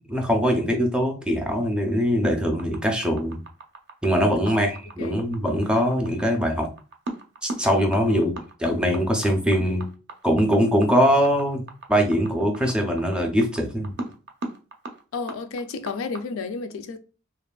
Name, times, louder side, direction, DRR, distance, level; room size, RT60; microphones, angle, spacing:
voice 1, 0.1-3.4 4.0-6.7 7.4-8.3 8.6-9.9 10.2-13.9, equal, 5° right, 0.4 m, -22 dB
sound 1, 2.6-16.2, right 2 dB, 60° right, 0.5 m, -38 dB
voice 2, 4.5-5.2 8.1-8.4 15.1-17.0, left 4 dB, 80° left, 0.3 m, -32 dB
2.8 x 2.4 x 2.2 m
head